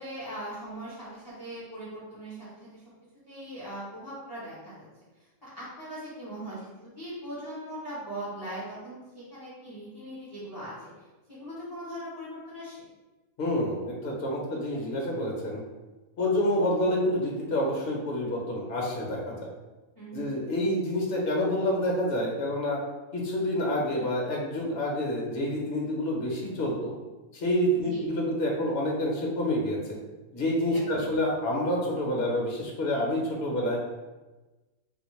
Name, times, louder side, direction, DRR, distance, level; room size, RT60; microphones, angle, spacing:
voice 1, 0.0-2.8 3.3-4.9 5.4-10.9 11.3-12.8 19.9-20.4 27.8-28.0 30.7-31.1, right 1 dB, 20° left, -8 dB, 0.7 m, -40 dB
voice 2, 13.4-15.6 16.2-19.5 20.1-22.8 23.1-26.9 27.3-30.0 30.3-33.8, left 1 dB, 50° left, -2 dB, 0.9 m, -28 dB
4.1 x 2.1 x 3.1 m, 1.2 s
omnidirectional pair, 1.5 m